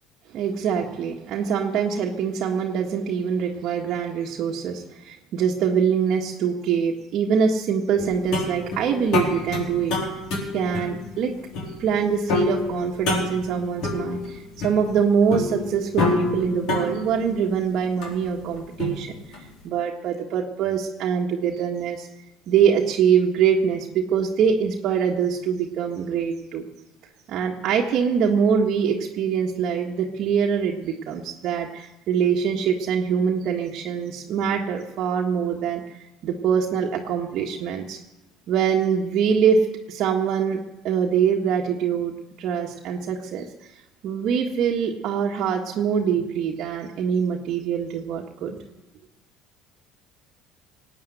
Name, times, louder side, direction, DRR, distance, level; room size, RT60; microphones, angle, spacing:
voice 1, 0.3-10.0 10.5-11.3 11.8-19.1 19.6-22.1 22.5-26.7 27.3-35.8 36.2-38.0 38.5-42.1 42.4-43.5 44.0-48.6, right 7 dB, 55° right, -1 dB, 1.5 m, -24 dB
sound 1, 8.0-19.5, left 3 dB, 65° left, 4.2 m, -28 dB
18.5 x 9.0 x 7.9 m, 0.97 s
hypercardioid pair, 65°, 0 cm